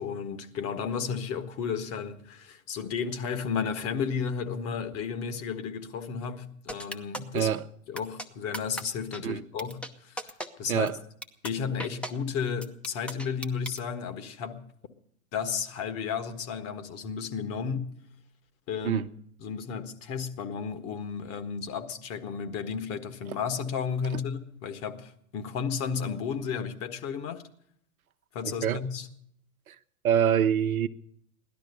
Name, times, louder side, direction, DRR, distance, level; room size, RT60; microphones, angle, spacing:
voice 1, 0.0-7.5 7.9-10.3 10.6-10.9 11.4-14.7 15.3-17.9 18.7-19.0 19.4-27.5 28.3-29.1, left 6 dB, 35° left, 1.6 m, -33 dB
sound 1, 6.7-7.4 8.0-8.3 8.5-8.8 9.1-9.2 9.6-9.9 10.2-10.5 10.9-11.0 11.2-11.5 11.8-12.1 12.6-13.8, equal, 5° left, 0.8 m, -36 dB
voice 2, 7.3-7.6 9.2-9.4 10.7-11.0 18.8-19.1 28.6-28.8 29.7-29.8 30.0-30.9, right 9 dB, 80° right, 0.9 m, -25 dB
17.0 x 12.0 x 6.8 m
hypercardioid pair, 110°, 42 cm